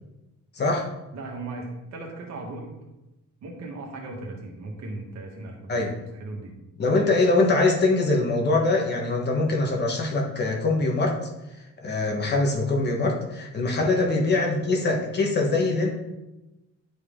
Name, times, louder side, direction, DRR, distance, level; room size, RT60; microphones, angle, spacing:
voice 1, 0.5-0.9 5.7-5.9 6.8-11.2 11.8-15.9, left 2 dB, 35° left, 0 dB, 1.4 m, -23 dB
voice 2, 1.1-2.8 3.4-6.5 13.7-14.0, right 2 dB, 65° right, 0 dB, 1.9 m, -37 dB
11.0 x 4.9 x 3.8 m, 0.99 s
cardioid pair, 160°, 30 cm